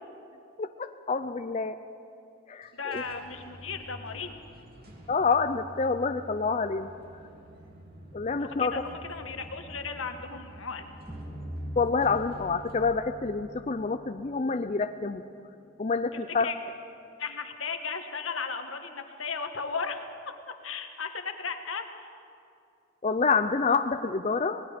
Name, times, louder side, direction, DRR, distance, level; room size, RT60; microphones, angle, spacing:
voice 1, 0.6-1.8 2.5-3.0 5.1-6.9 8.1-8.7 11.8-15.2 15.8-16.5 23.0-24.6, left 4 dB, 35° left, 8 dB, 0.5 m, -27 dB
sound 1, 2.6-14.3, equal, 50° right, 2.7 m, -49 dB
voice 2, 2.7-4.5 8.4-10.9 16.1-16.6 17.2-20.1 20.5-22.1, left 5 dB, 90° left, 6 dB, 1.6 m, -36 dB
sound 2, 11.1-14.2, equal, 15° right, 2.7 m, -41 dB
26.0 x 19.5 x 5.1 m, 2.5 s
head